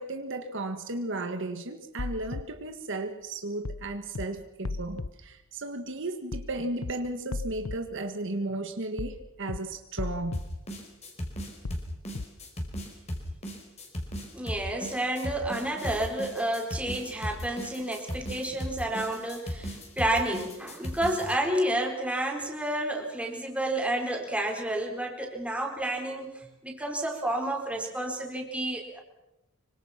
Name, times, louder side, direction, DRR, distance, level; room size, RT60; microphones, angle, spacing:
voice 1, 0.0-10.4, right 2 dB, 60° right, 7 dB, 1.7 m, -34 dB
sound 1, 2.0-2.4 3.6-3.8 4.1-4.3 4.6-5.1 6.3-6.5 6.8-6.9 7.3-7.8 9.0-9.2 9.5-9.6 10.0-10.4 11.6-11.8 12.1-12.3, left 3 dB, 80° left, 0.8 m, -34 dB
sound 2, 10.3-21.4, equal, 30° left, 5.0 m, -37 dB
voice 2, 14.3-29.0, right 1 dB, 5° right, 1 dB, 4.3 m, -30 dB
25.5 x 24.5 x 5.9 m, 0.91 s
head